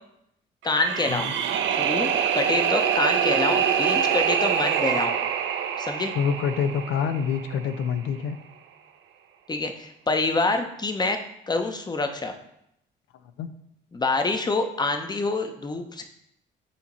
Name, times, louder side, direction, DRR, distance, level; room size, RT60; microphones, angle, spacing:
voice 1, 0.6-1.3 1.8-2.1 2.3-5.2 5.8-6.1 9.5-11.2 11.5-12.3 13.9-16.0, left 3 dB, 20° left, 6 dB, 0.7 m, -26 dB
sound 1, 0.7-7.7, right 8 dB, 75° right, 0.6 m, -25 dB
voice 2, 6.1-8.4 13.4-13.6, left 7 dB, 85° left, 10 dB, 0.5 m, -26 dB
8.4 x 2.9 x 4.2 m, 0.77 s
cardioid pair, 90°, 20 cm